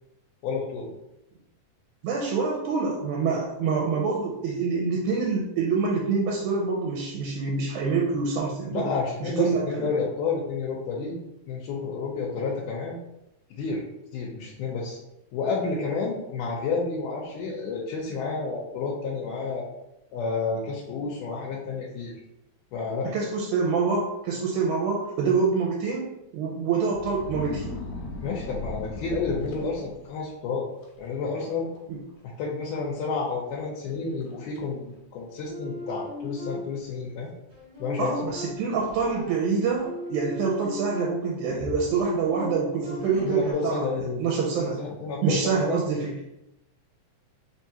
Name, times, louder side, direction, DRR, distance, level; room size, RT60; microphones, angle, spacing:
voice 1, 0.4-0.9 8.7-11.2 11.5-13.0 13.6-13.8 14.1-15.0 15.3-19.7 20.1-22.1 22.7-23.1 28.2-30.7 31.0-31.7 32.2-37.3 37.8-38.1 43.3-44.2 44.6-45.8, left 4 dB, 85° left, -3 dB, 2.2 m, -30 dB
voice 2, 2.0-8.9 9.2-9.9 23.1-27.8 29.6-29.7 31.9-32.0 38.0-43.9 44.2-44.8 45.2-46.1, right 5 dB, 80° right, -2 dB, 2.0 m, -26 dB
sound 1, 26.9-30.2 30.8-31.1 31.4-31.8 32.1-32.2 33.0-33.1 33.6-33.7 34.2-34.6 35.5-35.6 38.4-39.4 41.4-42.5 43.0-43.7, left 2 dB, 65° left, 1.9 m, -38 dB
sound 2, 35.5-37.0 37.5-41.5 42.0-43.5, left 1 dB, 35° right, 1.6 m, -38 dB
4.7 x 3.5 x 2.8 m, 0.87 s
omnidirectional pair, 3.6 m